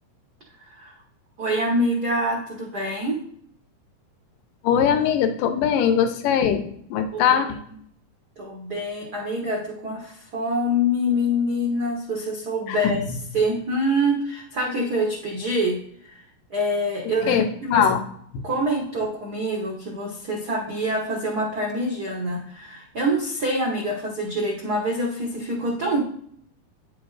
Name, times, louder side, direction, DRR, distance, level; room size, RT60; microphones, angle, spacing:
voice 1, 0.6-0.9 1.4-3.2 7.1-7.4 8.4-13.0 13.3-16.2 16.5-17.9 18.4-26.0, equal, 85° right, 0 dB, 0.8 m, -25 dB
voice 2, 4.6-6.6 6.9-7.6 12.7-12.8 17.2-17.4 17.7-18.0 18.3-18.4, left 8 dB, 85° left, 7 dB, 2.4 m, -20 dB
9.1 x 7.0 x 3.2 m, 0.64 s
omnidirectional pair, 3.7 m